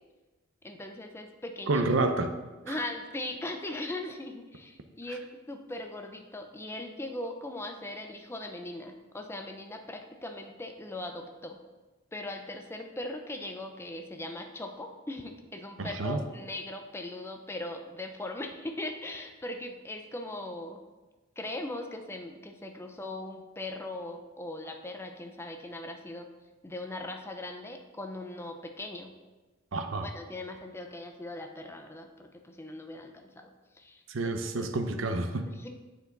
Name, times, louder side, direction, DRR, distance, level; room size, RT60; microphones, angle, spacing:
voice 1, 0.6-1.8 2.6-11.6 12.1-20.8 21.4-26.3 26.6-29.1 30.0-33.5 33.8-34.0 34.6-34.7 35.5-35.7, left 1 dB, 15° left, 4 dB, 0.5 m, -39 dB
voice 2, 1.7-2.3 2.7-2.8 15.8-16.2 29.7-30.1 34.1-35.5, right 2 dB, 80° right, 7 dB, 0.7 m, -29 dB
9.5 x 4.5 x 4.0 m, 1.2 s
head